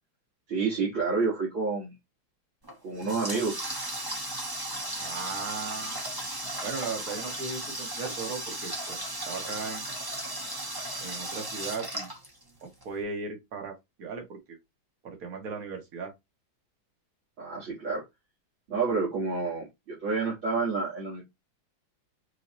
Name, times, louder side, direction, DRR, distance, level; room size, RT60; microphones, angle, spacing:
voice 1, 0.5-1.9 2.8-3.6 17.4-18.0 18.7-21.2, right 4 dB, 75° right, 3.5 m, -29 dB
Water tap faucet, 2.6-12.8, right 1 dB, 15° right, 1.0 m, -36 dB
voice 2, 5.0-6.0 6.6-9.9 11.0-12.1 12.8-14.6 15.0-16.1, right 4 dB, 45° right, 1.7 m, -37 dB
6.4 x 2.8 x 2.7 m
omnidirectional pair, 2.2 m